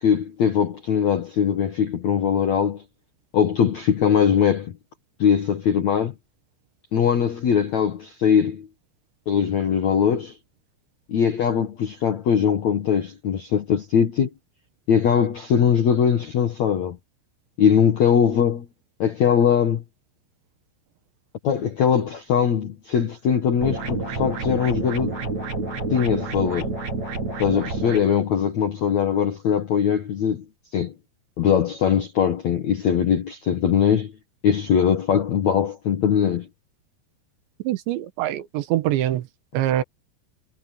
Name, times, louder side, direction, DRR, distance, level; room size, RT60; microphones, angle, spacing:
voice 1, 0.0-2.8 3.3-4.7 5.2-6.1 6.9-8.7 9.3-10.4 11.1-14.3 14.9-17.0 17.6-18.7 19.0-19.8 21.4-25.1 25.9-26.7 27.4-30.4 30.7-30.9 31.4-34.1 34.4-36.5, left 8 dB, 65° left, 1.7 m, -21 dB
sound 1, 23.6-28.0, right 3 dB, 35° right, 7.3 m, -28 dB
voice 2, 37.7-39.2 39.5-39.8, right 13 dB, 75° right, 3.4 m, -24 dB
omnidirectional pair, 5.4 m